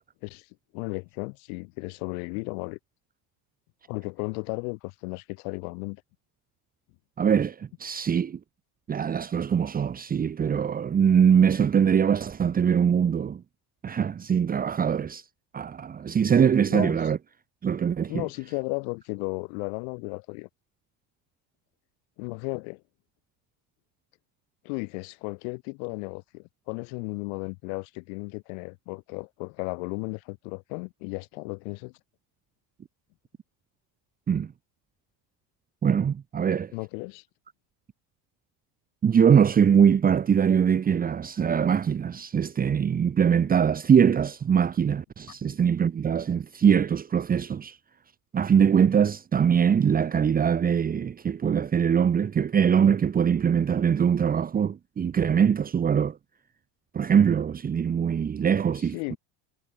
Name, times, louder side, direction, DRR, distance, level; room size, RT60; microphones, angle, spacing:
voice 1, 0.7-2.8 3.9-6.0 16.7-17.0 18.1-20.5 22.2-22.8 24.6-31.9 36.7-37.2 58.8-59.2, left 40 dB or more, 75° left, 4.5 m, -34 dB
voice 2, 7.2-8.4 8.9-13.4 13.8-15.2 15.5-17.2 17.6-18.2 34.3-34.5 35.8-36.7 39.0-47.8 48.3-56.2 56.9-59.2, right 7 dB, 20° right, 1.8 m, -22 dB
cardioid pair, 170°, 43 cm